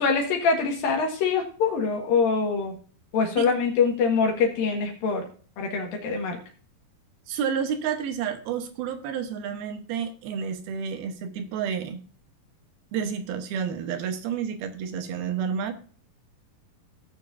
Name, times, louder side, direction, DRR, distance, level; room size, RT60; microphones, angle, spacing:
voice 1, 0.0-2.8 3.1-5.3 5.6-6.4, left 5 dB, 75° left, 1 dB, 3.3 m, -24 dB
voice 2, 7.3-12.0 12.9-15.8, right 7 dB, 85° right, 8 dB, 3.0 m, -30 dB
18.5 x 7.0 x 2.6 m, 0.42 s
omnidirectional pair, 4.2 m